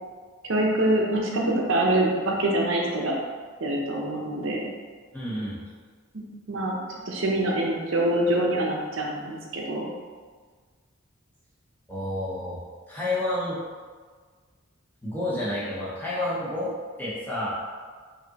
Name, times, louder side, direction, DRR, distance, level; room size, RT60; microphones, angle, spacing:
voice 1, 0.5-3.1 3.6-4.6 6.1-6.8 7.1-9.9, right 1 dB, 65° right, -1 dB, 0.7 m, -25 dB
voice 2, 5.1-5.6 11.9-12.6 12.9-13.6 15.0-16.7 17.0-17.5, left 1 dB, 10° left, -8 dB, 0.9 m, -29 dB
5.0 x 2.8 x 2.8 m, 1.5 s
head